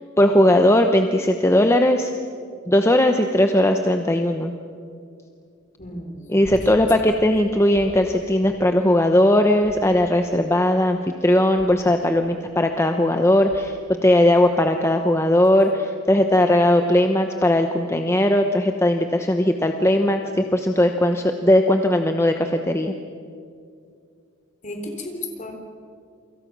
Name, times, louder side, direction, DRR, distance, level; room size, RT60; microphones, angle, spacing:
voice 1, 0.2-2.1 2.7-4.6 6.3-13.8 14.0-22.9, left 1 dB, 15° left, 5 dB, 0.9 m, -18 dB
voice 2, 5.8-6.3 24.6-25.6, left 1 dB, 40° left, 4 dB, 3.7 m, -33 dB
sound 1, 6.4-7.1 7.7-8.3 9.6-10.3 11.5-12.0 13.5-13.9 16.3-16.4, equal, 60° left, 4.1 m, -41 dB
28.5 x 24.5 x 6.2 m, 2.3 s
head